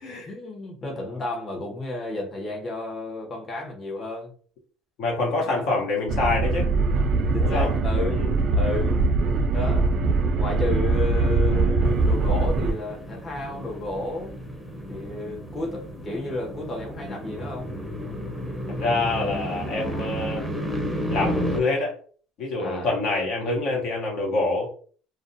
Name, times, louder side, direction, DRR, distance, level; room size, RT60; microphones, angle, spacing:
voice 1, 0.3-4.3 5.4-5.8 7.3-8.2 8.5-9.0 9.5-10.0 10.3-14.4 14.9-17.7 22.6-22.9, left 2 dB, 30° left, 0 dB, 0.9 m, -32 dB
voice 2, 5.0-6.7 7.4-7.7 8.2-8.3 18.8-20.4 21.1-22.0 22.4-24.7, left 2 dB, 65° left, -1 dB, 0.8 m, -26 dB
sound 1, 6.1-12.7, right 3 dB, 50° right, 0.3 m, -22 dB
sound 2, 11.8-21.6, equal, 5° right, 0.6 m, -32 dB
2.4 x 2.1 x 2.6 m, 0.43 s
supercardioid pair, 95°, 0 cm